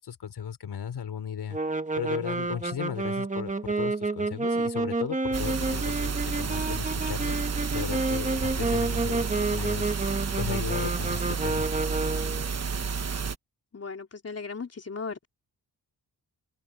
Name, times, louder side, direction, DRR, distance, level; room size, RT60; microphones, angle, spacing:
voice 1, 0.0-1.6 1.9-7.4 7.7-9.9 10.4-11.7, left 8 dB, 90° left, 4.2 m, -36 dB
sound 1, 1.5-12.5, right 3 dB, 20° right, 1.4 m, -30 dB
sound 2, 5.3-13.4, right 5 dB, 40° right, 1.3 m, -30 dB
voice 2, 13.7-15.3, left 4 dB, 40° left, 3.6 m, -37 dB
wide cardioid pair, 105°, 38 cm